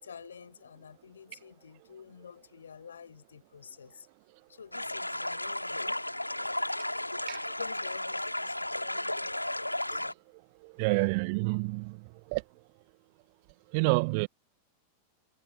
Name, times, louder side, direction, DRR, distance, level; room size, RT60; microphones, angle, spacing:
voice 1, 0.0-4.1 4.5-6.0 6.4-6.6 7.6-10.0 10.9-11.1, left 7 dB, 70° left, 5.2 m, -49 dB
sound 1, 4.7-10.1, left 1 dB, 85° left, 2.9 m, -34 dB
voice 2, 10.6-12.0 12.3-12.4 13.7-14.3, right 32 dB, 45° right, 1.6 m, -28 dB
figure-of-eight pair, 90°, 0 cm